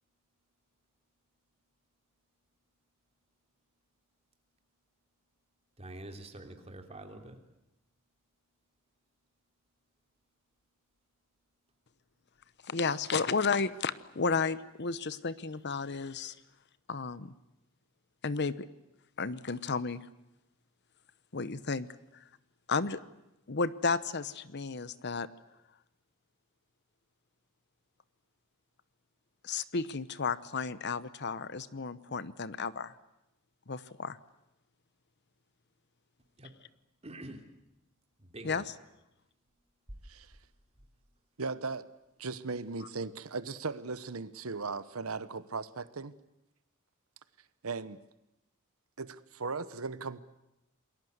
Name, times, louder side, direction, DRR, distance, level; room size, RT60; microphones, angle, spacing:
voice 1, 5.8-7.3 36.4-36.5 37.0-37.4 38.2-38.6, right 1 dB, 30° right, 5 dB, 3.3 m, -46 dB
voice 2, 12.6-16.3 16.9-17.3 18.2-18.5 19.2-20.0 21.3-21.9 22.7-23.0 23.5-25.3 29.4-33.0 33.7-34.2 38.4-38.7, left 4 dB, 55° left, 16 dB, 1.0 m, -32 dB
voice 3, 41.4-41.9 42.2-46.1 47.6-48.0 49.0-50.2, right 4 dB, 90° right, 15 dB, 1.1 m, -37 dB
28.5 x 21.0 x 8.0 m, 0.89 s
head